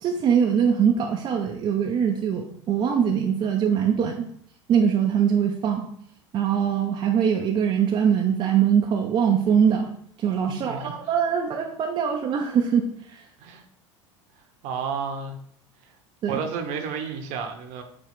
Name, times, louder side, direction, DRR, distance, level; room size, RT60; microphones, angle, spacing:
voice 1, 0.0-4.3 4.7-5.9 6.3-9.9 10.2-13.2 16.2-16.4, right 7 dB, 30° right, 2 dB, 0.5 m, -22 dB
voice 2, 10.5-10.9 13.4-13.6 14.6-15.4 16.3-17.8, right 6 dB, 50° right, 5 dB, 0.8 m, -31 dB
6.6 x 2.3 x 3.5 m, 0.65 s
figure-of-eight pair, 75°, 16 cm